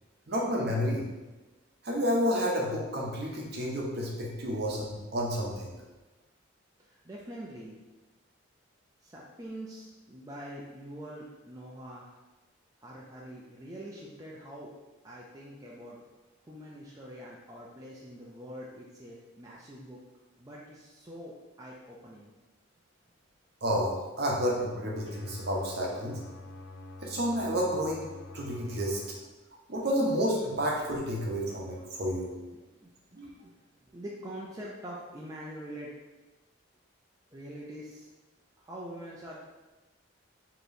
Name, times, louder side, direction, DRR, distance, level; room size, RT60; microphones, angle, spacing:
voice 1, 0.3-1.1 1.8-5.7 23.6-26.2 27.0-28.1 28.3-29.0 29.7-32.3 33.2-33.3, equal, 50° right, -2 dB, 0.7 m, -30 dB
voice 2, 6.8-7.8 9.0-12.2 12.8-14.7 15.0-16.0 16.4-20.0 20.4-22.3 32.5-33.5 33.8-35.9 37.3-38.1 38.6-39.4, equal, 15° right, -5 dB, 0.4 m, -44 dB
sound 1, 25.0-29.1, left 2 dB, 75° left, 0.7 m, -46 dB
4.9 x 2.9 x 2.6 m, 1.1 s
head